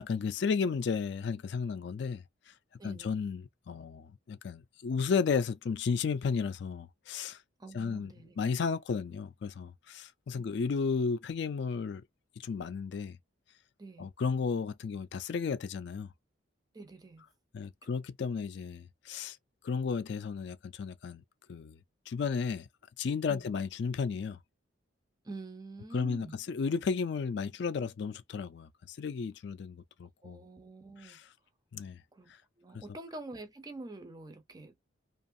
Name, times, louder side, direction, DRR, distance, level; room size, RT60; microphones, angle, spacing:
voice 1, 0.0-2.2 2.8-7.4 7.7-12.0 12.4-13.2 14.0-16.1 17.5-19.4 19.6-21.2 21.5-21.8 22.1-22.7 23.0-24.4 25.9-30.4 31.0-31.2 31.7-32.0 32.7-32.8, left 5 dB, 55° left, 0.3 m, -33 dB
voice 2, 2.8-3.2 7.6-8.4 10.4-10.7 13.8-14.1 16.7-17.3 17.8-18.0 23.3-23.5 25.2-26.4 30.2-31.2 32.1-34.8, right 2 dB, 20° right, 0.4 m, -47 dB
2.5 x 2.4 x 2.6 m
head